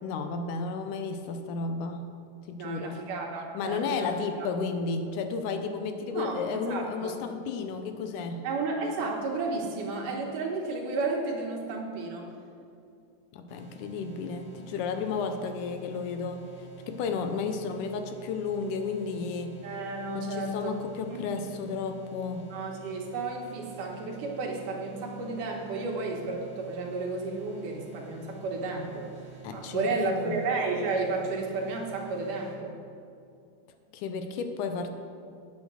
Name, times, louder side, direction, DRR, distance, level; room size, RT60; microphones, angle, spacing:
voice 1, 0.0-2.1 2.5-2.9 3.5-8.5 13.3-16.5 16.9-19.6 20.3-22.5 29.4-30.4 33.9-34.9, left 5 dB, 85° left, 7 dB, 2.1 m, -33 dB
voice 2, 2.6-4.1 4.4-4.5 6.1-7.1 8.4-12.3 19.6-20.8 21.1-21.3 22.5-29.1 29.5-32.7, right 3 dB, 75° right, 0 dB, 2.8 m, -32 dB
sound 1, 13.5-32.6, right 7 dB, 35° left, 2.4 m, -49 dB
9.5 x 7.7 x 6.2 m, 2.4 s
omnidirectional pair, 3.7 m